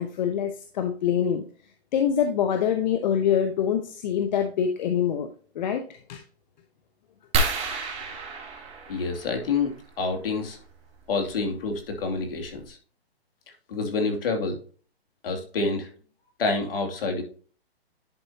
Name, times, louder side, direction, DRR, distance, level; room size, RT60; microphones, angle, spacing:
voice 1, 0.0-1.4 1.9-5.3 5.5-5.8 6.1-6.2, left 8 dB, 45° left, 6 dB, 1.0 m, -25 dB
sound 1, 7.3-9.7 11.3-11.5 12.1-12.2 12.5-12.7, right 3 dB, 20° right, 1.8 m, -29 dB
voice 2, 8.9-10.6 11.1-12.8 13.7-14.6 15.2-15.9 16.4-17.2, left 4 dB, 60° left, 3 dB, 2.8 m, -28 dB
11.0 x 5.1 x 2.9 m, 0.41 s
hypercardioid pair, 145°, 32 cm